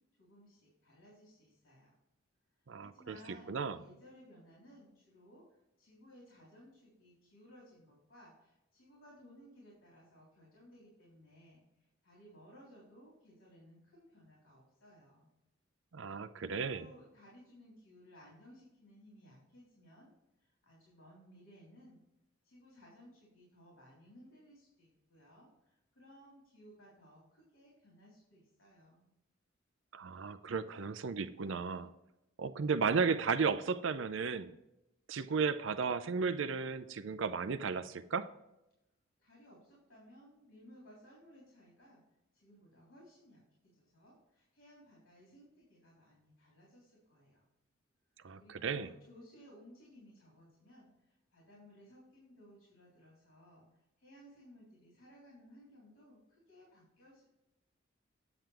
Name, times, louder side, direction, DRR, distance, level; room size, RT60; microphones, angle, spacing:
voice 1, 0.2-1.9 2.8-15.3 16.4-20.1 20.4-22.0 22.4-29.1 39.2-42.0 42.3-47.4 48.4-57.3, equal, 85° left, -4 dB, 3.7 m, -59 dB
voice 2, 2.7-3.1 3.5-3.8 15.9-16.9 29.9-31.9 32.4-34.5 35.1-38.3 48.2-48.9, right 5 dB, 70° right, 12 dB, 0.5 m, -34 dB
9.0 x 7.6 x 3.4 m, 0.89 s
head